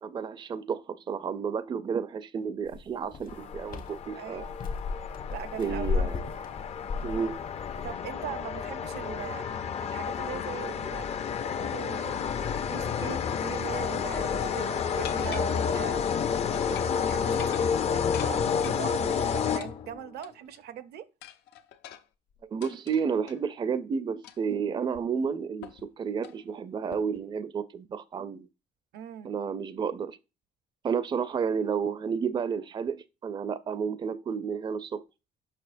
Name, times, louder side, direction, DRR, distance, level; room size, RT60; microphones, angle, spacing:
voice 1, 0.0-4.5 5.6-6.2 7.0-7.4 22.5-28.5 29.2-30.2 30.8-35.0, right 6 dB, 25° right, 0.4 m, -31 dB
sound 1, 2.7-7.9, left 5 dB, 55° left, 1.0 m, -35 dB
sound 2, 3.3-20.1, left 7 dB, 40° left, 0.5 m, -30 dB
voice 2, 4.1-4.6 5.0-6.1 7.8-9.5 9.8-11.1 11.4-21.1 28.9-29.3, right 9 dB, 70° right, 0.6 m, -41 dB
sound 3, 15.0-16.2 16.5-17.0 17.3-18.8 19.6-20.6 21.2-23.4 24.2-24.5 24.9-25.0 25.6-25.9 26.2-26.4 26.9-27.2, left 9 dB, 80° left, 0.6 m, -45 dB
6.6 x 5.6 x 2.5 m
cardioid pair, 110°, 17 cm